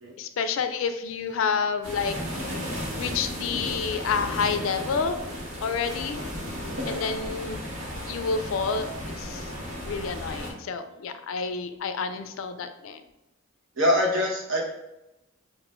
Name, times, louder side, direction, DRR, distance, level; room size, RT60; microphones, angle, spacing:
voice 1, 0.2-2.1 3.0-5.2 5.6-6.2 6.9-7.6 8.1-9.5 9.9-13.0, left 5 dB, 70° left, 9 dB, 0.4 m, -29 dB
sound 1, 1.8-10.5, equal, 90° right, 1.3 m, -34 dB
voice 2, 13.8-14.6, left 1 dB, 65° right, -2 dB, 1.1 m, -23 dB
6.0 x 2.5 x 2.5 m, 0.94 s
head